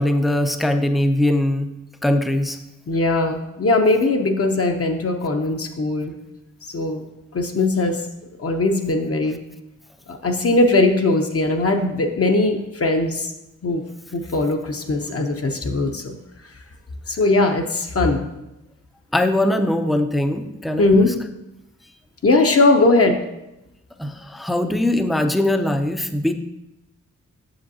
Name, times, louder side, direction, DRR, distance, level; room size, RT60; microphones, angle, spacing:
voice 1, 0.0-1.7 2.0-2.6 19.1-21.1 24.0-26.3, left 1 dB, ahead, 7 dB, 0.4 m, -21 dB
voice 2, 2.9-6.1 6.7-7.0 7.3-8.0 8.4-9.4 10.1-13.3 13.6-13.9 14.1-16.2 17.1-18.2 20.8-21.2 22.2-23.2, left 2 dB, 45° left, 4 dB, 0.6 m, -19 dB
7.7 x 6.8 x 2.7 m, 0.93 s
wide cardioid pair, 120°, 32 cm